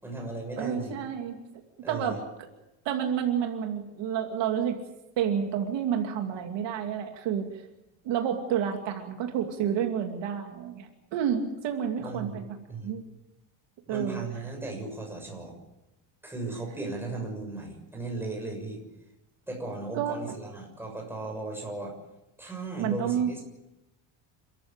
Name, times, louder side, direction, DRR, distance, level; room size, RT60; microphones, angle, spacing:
voice 1, 0.0-0.9 1.8-2.2 12.0-12.4 12.7-12.9 13.9-15.5 16.2-18.8 19.5-22.0 22.4-23.4, right 2 dB, 5° right, 0 dB, 6.7 m, -36 dB
voice 2, 0.6-1.4 1.9-2.5 2.8-4.8 5.2-7.5 8.0-12.6 12.8-13.0 13.9-14.2 19.9-20.4 22.8-23.4, right 8 dB, 55° right, 3 dB, 2.7 m, -29 dB
29.0 x 13.5 x 8.9 m, 0.92 s
cardioid pair, 165°, 50 cm